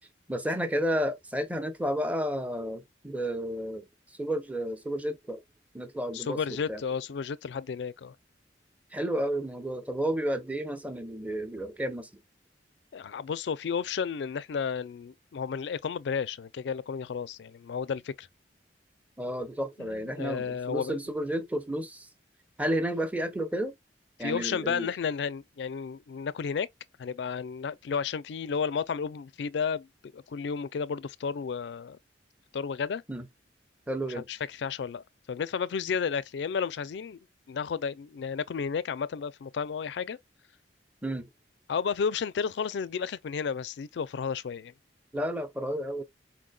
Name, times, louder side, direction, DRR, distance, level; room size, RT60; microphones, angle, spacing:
voice 1, 0.3-3.9 4.2-5.4 5.7-6.4 6.7-6.8 8.9-12.1 19.2-22.1 22.6-23.7 24.2-24.9 33.1-33.3 33.9-34.3 41.0-41.3 45.1-46.0, equal, 10° right, 0.6 m, -31 dB
voice 2, 6.1-8.1 12.9-18.3 19.8-21.0 24.2-26.7 27.0-32.0 32.5-33.0 34.2-37.2 37.5-40.2 41.7-44.7, left 6 dB, 70° left, 0.4 m, -32 dB
4.5 x 3.8 x 2.2 m
head